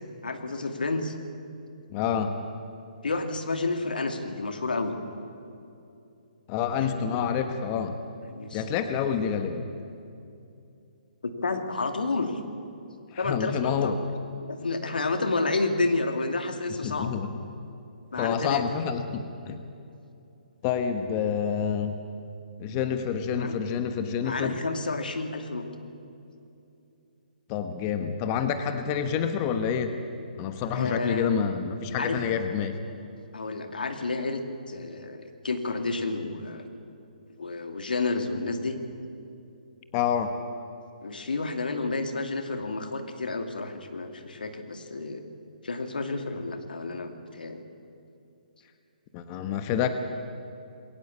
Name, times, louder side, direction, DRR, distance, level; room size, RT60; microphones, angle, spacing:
voice 1, 0.2-1.2 3.0-5.0 6.9-7.3 8.3-8.6 11.2-12.4 13.2-13.9 14.5-17.1 18.1-18.6 23.3-23.5 24.2-25.7 30.7-31.3 32.0-32.2 33.3-34.4 34.7-36.6 37.4-38.8 41.0-45.2 45.6-47.6, left 3 dB, 90° left, 6 dB, 2.5 m, -30 dB
voice 2, 1.9-2.4 6.5-8.0 8.5-9.7 13.1-14.0 16.8-17.3 18.2-19.6 20.6-22.0 22.6-24.5 27.5-30.0 30.4-32.8 39.9-40.3 49.1-49.9, left 7 dB, 30° left, 8 dB, 1.2 m, -28 dB
21.5 x 17.5 x 8.6 m, 2.7 s
hypercardioid pair, 150°, 5 cm